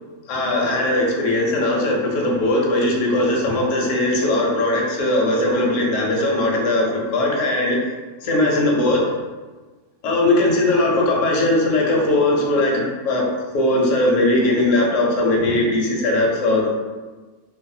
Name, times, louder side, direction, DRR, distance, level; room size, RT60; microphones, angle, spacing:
voice 1, 0.3-7.8 8.2-9.1 10.0-13.2 13.5-16.7, left 1 dB, 70° left, -2 dB, 0.9 m, -19 dB
2.5 x 2.1 x 2.6 m, 1.3 s
omnidirectional pair, 1.5 m